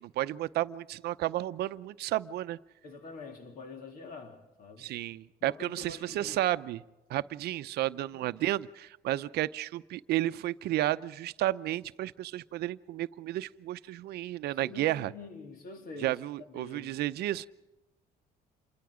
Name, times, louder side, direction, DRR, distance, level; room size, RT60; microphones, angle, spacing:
voice 1, 0.0-2.6 4.8-6.8 7.1-15.1 16.0-17.5, right 14 dB, 70° right, 0.7 m, -32 dB
voice 2, 2.8-4.9 5.4-6.4 7.9-8.4 14.5-17.0, left 3 dB, 60° left, 3.3 m, -46 dB
27.5 x 22.5 x 5.0 m
cardioid pair, 110°, 17 cm